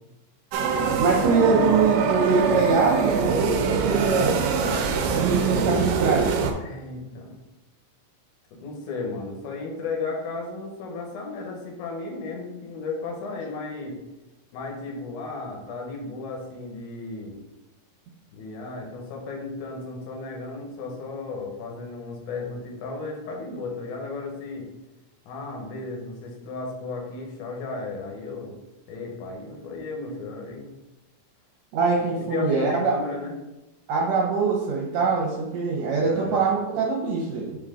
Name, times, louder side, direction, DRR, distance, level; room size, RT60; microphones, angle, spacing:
sound 1, 0.5-6.5, right 5 dB, 85° right, 2.2 m, -24 dB
voice 1, 1.0-4.4 5.1-6.3 31.7-32.9 33.9-37.6, right 4 dB, 65° right, -3 dB, 1.9 m, -23 dB
voice 2, 6.6-7.4 8.6-14.0 14.5-17.4 18.3-24.7 25.3-28.6 28.9-30.7 32.2-33.4 36.0-36.4, left 3 dB, 70° left, 0 dB, 2.4 m, -34 dB
5.5 x 4.8 x 3.7 m, 1.0 s
omnidirectional pair, 3.9 m